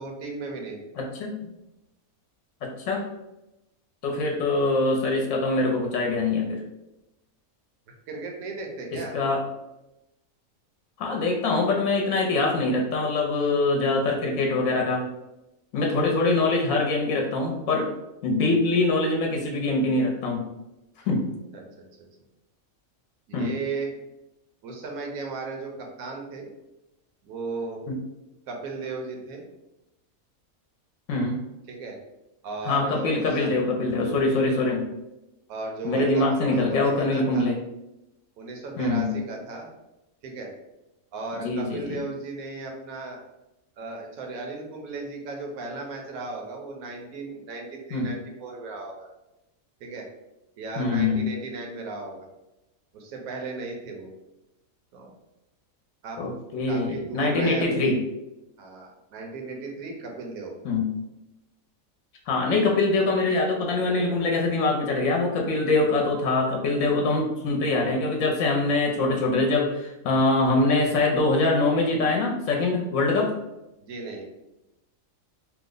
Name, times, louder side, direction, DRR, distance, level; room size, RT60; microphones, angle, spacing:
voice 1, 0.0-0.8 8.1-9.1 21.5-21.6 23.3-23.9 24.6-26.5 27.2-27.8 28.5-29.4 31.7-32.0 32.4-33.5 35.5-37.5 38.4-39.7 40.2-40.5 41.1-43.2 43.8-49.1 49.8-50.1 50.6-52.3 52.9-54.1 54.9-55.1 56.0-56.2 56.7-57.9 58.6-60.6 63.0-63.1 73.8-74.3, right 3 dB, 80° right, 1 dB, 1.1 m, -35 dB
voice 2, 1.0-1.5 2.6-3.0 4.0-6.6 9.1-9.4 11.0-15.1 15.7-17.9 18.2-20.4 21.1-21.2 23.3-23.5 27.9-28.0 31.1-31.4 32.6-34.8 35.8-37.6 38.8-39.1 41.4-42.0 47.9-48.1 50.8-51.3 56.2-58.0 60.6-60.9 62.3-73.3, left 2 dB, 70° left, 0 dB, 0.9 m, -24 dB
3.0 x 2.0 x 3.7 m, 0.94 s
omnidirectional pair, 1.5 m